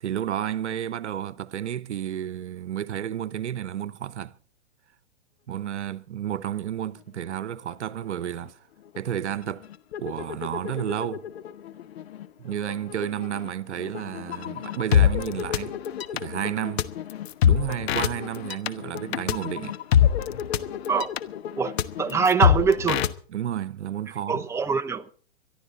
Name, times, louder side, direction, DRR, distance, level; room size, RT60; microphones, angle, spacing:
voice 1, 0.0-4.3 5.5-8.6 9.0-9.6 10.0-11.3 12.4-15.8 16.1-16.9 17.4-19.8 23.3-24.5, right 10 dB, 80° right, 0.9 m, -31 dB
sound 1, 7.7-7.8 8.0-8.5 8.9-23.1, left 9 dB, 65° left, 1.2 m, -27 dB
voice 2, 21.6-23.0 24.3-25.1, right 5 dB, 10° right, 0.7 m, -24 dB
24.5 x 12.0 x 4.0 m
hypercardioid pair, 115°, 34 cm